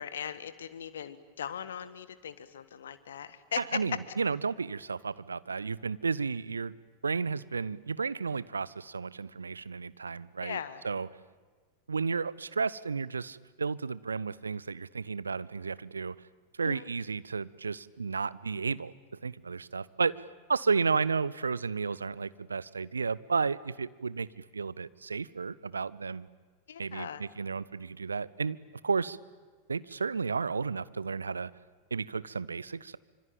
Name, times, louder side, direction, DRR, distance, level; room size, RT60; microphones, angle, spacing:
voice 1, 0.0-3.6 10.4-10.8 16.6-16.8 26.7-27.2, left 8 dB, 65° left, 14 dB, 1.5 m, -39 dB
voice 2, 3.6-6.7 7.0-11.1 11.9-16.2 16.6-26.3 26.8-28.6 28.8-29.2 29.7-31.5 31.9-33.0, right 5 dB, 75° right, 19 dB, 0.7 m, -33 dB
26.0 x 25.5 x 8.9 m, 1.5 s
figure-of-eight pair, 90°, 0 cm